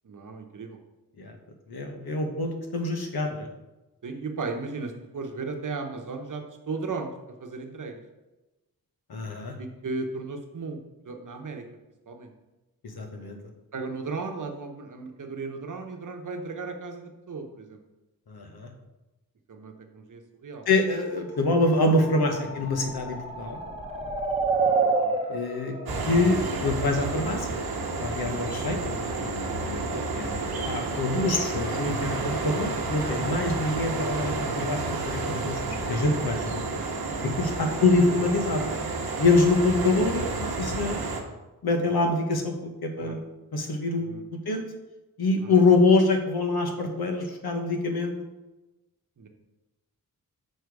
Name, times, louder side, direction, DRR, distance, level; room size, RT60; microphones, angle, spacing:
voice 1, 0.0-0.8 4.0-7.1 7.4-8.0 9.6-10.8 11.0-11.6 12.1-12.3 13.7-17.8 19.5-20.7 24.8-25.2 28.3-28.6 30.9-31.0 36.8-37.1 43.0-43.2 44.1-44.2 45.4-45.6 49.2-49.3, right 4 dB, 55° right, 4 dB, 0.9 m, -36 dB
voice 2, 1.7-3.5 9.1-9.5 12.8-13.4 18.3-18.7 20.7-23.6 25.3-25.7 26.1-27.6 28.0-28.8 29.2-30.4 30.7-36.6 37.4-38.7 39.2-40.2 40.6-41.1 41.6-43.2 43.5-44.2 44.4-44.6 45.2-48.1, left 3 dB, 80° left, 4 dB, 1.1 m, -25 dB
sound 1, 21.5-27.3, right 4 dB, 15° right, 0.8 m, -29 dB
sound 2, 25.9-41.2, right 3 dB, 80° right, 1.0 m, -30 dB
6.7 x 4.4 x 4.7 m, 1.1 s
wide cardioid pair, 120°, 37 cm